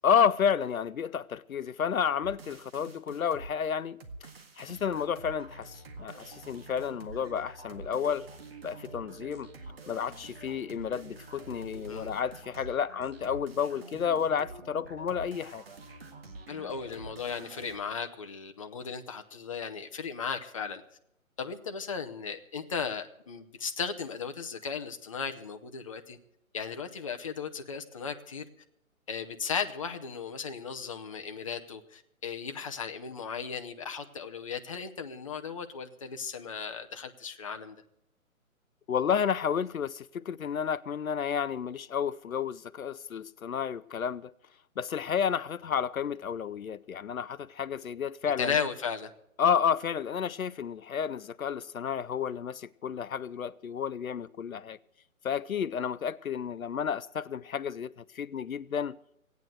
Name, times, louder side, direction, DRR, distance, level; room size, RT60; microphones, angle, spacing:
voice 1, 0.0-4.0 4.6-8.3 8.6-9.5 9.9-15.6 38.9-44.3 44.8-48.5 49.4-54.8 55.2-59.0, left 7 dB, 75° left, 0.6 m, -31 dB
sound 1, 2.2-3.5 4.0-17.8, right 3 dB, 45° right, 1.8 m, -47 dB
voice 2, 16.5-20.8 21.4-26.2 26.5-28.4 29.1-37.8 48.4-49.1, left 6 dB, 25° left, 0.7 m, -36 dB
15.5 x 9.4 x 7.8 m
figure-of-eight pair, 145°, 42 cm